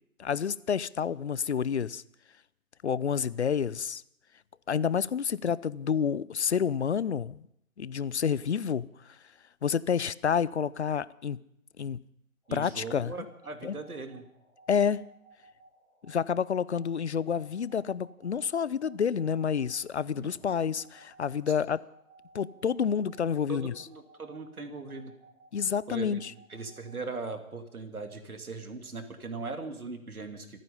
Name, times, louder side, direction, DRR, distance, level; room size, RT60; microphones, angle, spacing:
voice 1, 0.2-2.0 2.8-4.0 4.7-7.4 7.8-8.9 9.6-11.4 11.8-12.0 12.5-13.1 13.6-13.7 14.7-15.0 16.0-21.8 22.3-23.9 25.5-26.3, left 7 dB, 50° left, 20 dB, 0.6 m, -29 dB
sound 1, 12.4-27.5, right 2 dB, 5° right, 6.5 m, -59 dB
voice 2, 12.5-14.3 20.1-20.3 23.5-25.1 25.9-26.2 26.5-30.6, right 3 dB, 80° right, 6 dB, 2.8 m, -39 dB
27.0 x 9.5 x 5.5 m, 0.75 s
figure-of-eight pair, 160°, 43 cm